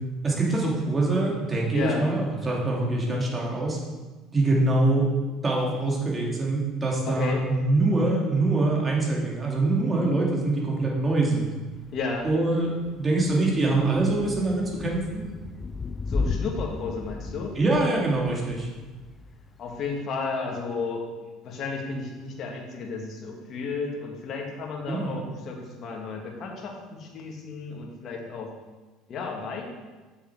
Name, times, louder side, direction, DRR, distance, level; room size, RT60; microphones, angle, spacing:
voice 1, 0.2-3.8 4.3-5.1 5.4-11.5 12.2-12.7 13.0-15.2 17.6-18.7 24.9-25.2, right 2 dB, 25° right, -3 dB, 2.4 m, -24 dB
voice 2, 1.7-2.1 7.0-7.4 11.9-12.3 16.1-17.6 19.6-21.1 21.4-28.5 29.1-29.6, left 4 dB, 50° left, 0 dB, 1.8 m, -33 dB
Thunder / Rain, 11.7-20.0, left 4 dB, 25° left, 0.4 m, -35 dB
7.5 x 6.8 x 4.6 m, 1.3 s
supercardioid pair, 105°, 0 cm